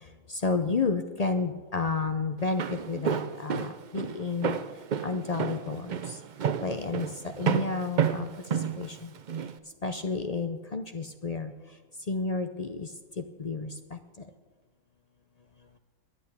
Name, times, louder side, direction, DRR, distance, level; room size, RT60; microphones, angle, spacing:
voice 1, 0.4-4.6 5.0-6.0 6.6-7.1 7.4-8.3 8.8-9.0 9.8-11.5 12.1-12.9 13.4-13.7, left 4 dB, 50° left, 7 dB, 0.4 m, -30 dB
Walk footsteps, 2.4-9.5, right 7 dB, 80° right, 0.4 m, -30 dB
12.0 x 8.1 x 8.6 m, 1.3 s
omnidirectional pair, 1.5 m